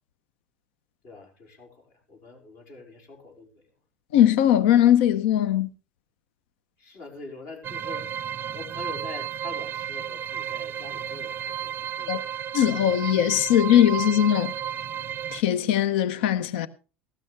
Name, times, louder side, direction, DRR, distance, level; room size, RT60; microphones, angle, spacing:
voice 1, 1.0-3.7 6.8-8.1 8.5-12.3, left 3 dB, 60° left, 5.0 m, -44 dB
voice 2, 4.1-5.7 12.1-12.2 12.5-14.5 15.3-16.7, left 11 dB, 75° left, 0.7 m, -20 dB
sound 1, 7.6-15.4, right 9 dB, 40° right, 0.5 m, -33 dB
16.0 x 13.0 x 3.3 m
hypercardioid pair, 80°, 6 cm